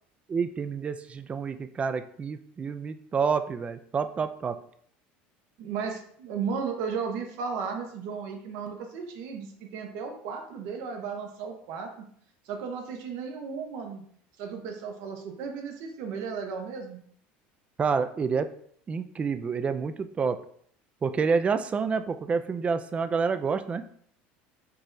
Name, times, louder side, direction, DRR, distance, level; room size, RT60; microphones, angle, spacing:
voice 1, 0.3-4.6 17.8-18.5 18.9-20.4 21.0-23.8, right 5 dB, 25° right, 10 dB, 0.3 m, -28 dB
voice 2, 5.6-12.0 12.4-14.0 14.4-17.0, right 5 dB, 70° right, 4 dB, 0.9 m, -35 dB
4.5 x 3.1 x 2.6 m, 0.62 s
supercardioid pair, 110°, 5 cm